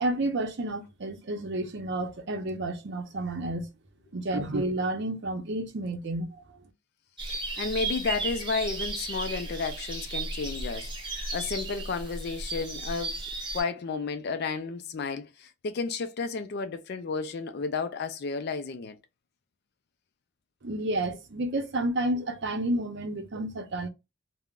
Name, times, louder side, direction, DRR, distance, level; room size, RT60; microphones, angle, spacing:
voice 1, 0.0-3.7 4.1-6.4 20.6-23.9, right 1 dB, 55° right, 0.6 m, -30 dB
sound 1, 7.2-13.6, right 3 dB, 25° right, 0.8 m, -35 dB
voice 2, 7.6-13.2 13.5-19.0, left 4 dB, 50° left, 0.4 m, -32 dB
3.6 x 2.1 x 2.3 m
head